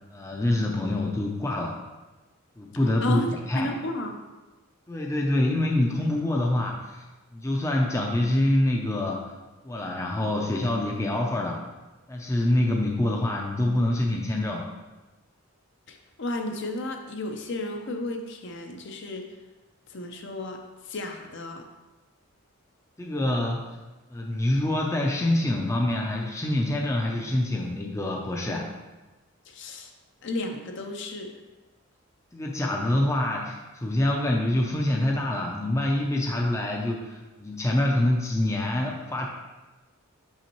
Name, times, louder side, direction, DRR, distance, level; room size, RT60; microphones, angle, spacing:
voice 1, 0.1-1.8 2.6-3.7 4.9-7.0 7.3-9.2 9.6-11.6 12.1-14.7 23.0-23.8 24.1-28.6 32.3-39.3, left 1 dB, 15° left, -1 dB, 0.5 m, -26 dB
voice 2, 3.0-4.2 15.9-19.3 19.9-21.7 29.5-29.9 30.2-31.3, left 1 dB, 55° left, 4 dB, 0.6 m, -33 dB
6.2 x 5.6 x 3.0 m, 1.1 s
head